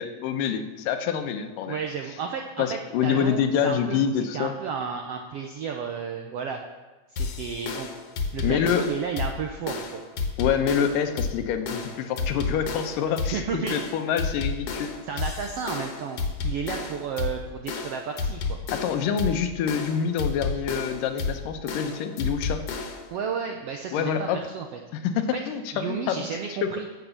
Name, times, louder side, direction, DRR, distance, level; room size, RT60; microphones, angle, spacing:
voice 1, 0.0-1.8 2.6-4.6 8.4-8.9 10.4-14.9 18.7-22.6 23.9-24.4 24.9-26.2 26.6-26.7, left 7 dB, 85° left, 7 dB, 2.5 m, -26 dB
voice 2, 1.7-4.0 4.3-6.6 7.1-7.9 8.3-10.0 13.3-13.8 15.1-18.6 23.1-24.8 25.7-26.9, right 6 dB, 80° right, 3 dB, 1.4 m, -32 dB
sound 1, 7.2-23.1, left 4 dB, 60° left, 2.0 m, -32 dB
11.0 x 7.8 x 7.1 m, 1.2 s
omnidirectional pair, 3.8 m